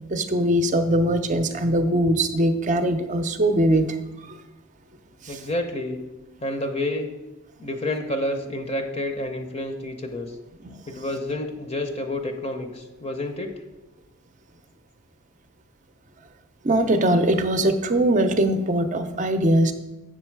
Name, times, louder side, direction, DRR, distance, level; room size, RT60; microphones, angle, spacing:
voice 1, 0.1-3.9 5.3-5.4 10.6-10.8 16.6-19.7, right 1 dB, 35° right, 9 dB, 0.6 m, -21 dB
voice 2, 5.3-6.0 6.4-7.1 7.6-10.3 10.9-13.6, left 1 dB, 30° left, 5 dB, 0.7 m, -29 dB
8.0 x 6.1 x 4.6 m, 1.0 s
head